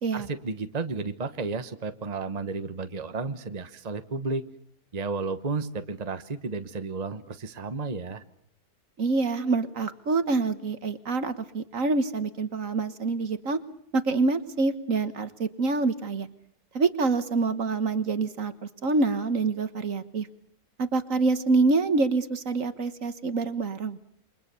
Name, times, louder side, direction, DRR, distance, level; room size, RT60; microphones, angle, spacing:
voice 1, 0.1-4.4 4.9-8.2, right 4 dB, 30° right, 9 dB, 1.2 m, -32 dB
voice 2, 9.0-13.6 13.9-16.3 16.7-18.5 18.8-20.3 20.8-24.0, right 3 dB, 60° right, 11 dB, 1.7 m, -26 dB
28.5 x 24.0 x 7.0 m, 0.66 s
omnidirectional pair, 1.6 m